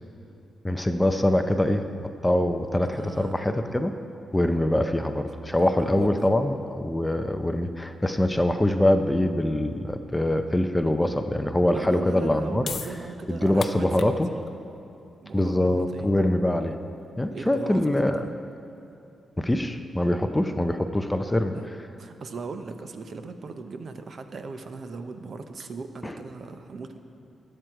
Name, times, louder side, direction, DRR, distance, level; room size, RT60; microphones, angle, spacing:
voice 1, 0.6-1.9 2.2-3.9 4.3-12.7 13.3-14.3 15.3-16.8 17.2-18.3 19.4-21.6 26.0-26.2, left 1 dB, 10° left, 7 dB, 0.5 m, -24 dB
voice 2, 2.8-3.4 5.6-6.3 11.7-14.1 15.2-16.1 17.3-17.9 18.2-18.3 21.5-21.7 22.0-27.0, right 4 dB, 50° right, 7 dB, 0.7 m, -38 dB
sound 1, 12.6-18.9, left 6 dB, 55° left, 0.5 m, -42 dB
20.5 x 7.8 x 4.6 m, 2.6 s
wide cardioid pair, 155°, 0 cm